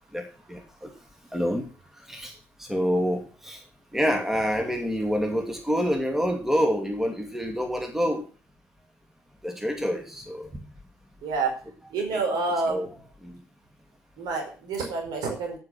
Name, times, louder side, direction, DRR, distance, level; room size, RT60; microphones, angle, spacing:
voice 1, 0.1-0.9 1.3-1.6 2.1-2.3 2.6-3.6 3.9-8.2 9.4-10.5 12.7-12.9 13.2-13.4, equal, 5° right, 3 dB, 2.5 m, -27 dB
voice 2, 11.2-11.5 11.9-12.9 14.2-15.6, right 3 dB, 60° right, 3 dB, 4.9 m, -28 dB
9.4 x 8.4 x 6.3 m, 0.37 s
figure-of-eight pair, 45°, 8 cm